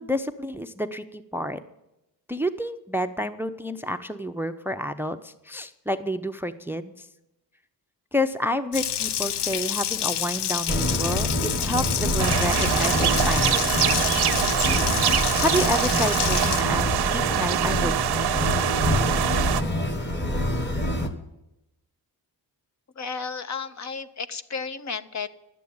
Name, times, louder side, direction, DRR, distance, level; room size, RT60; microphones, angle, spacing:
voice 1, 0.0-1.6 2.3-7.1 8.1-13.8 15.4-18.5, equal, 5° right, 12 dB, 0.5 m, -29 dB
Water tap faucet, 8.7-16.6, left 10 dB, 80° left, 0.7 m, -28 dB
sound 1, 10.7-21.1, left 1 dB, 25° left, 1.6 m, -26 dB
sound 2, 12.2-19.6, right 11 dB, 75° right, 0.7 m, -25 dB
voice 2, 23.0-25.3, left 5 dB, 45° left, 12 dB, 0.8 m, -33 dB
12.0 x 8.5 x 9.4 m, 0.89 s
wide cardioid pair, 130°, 40 cm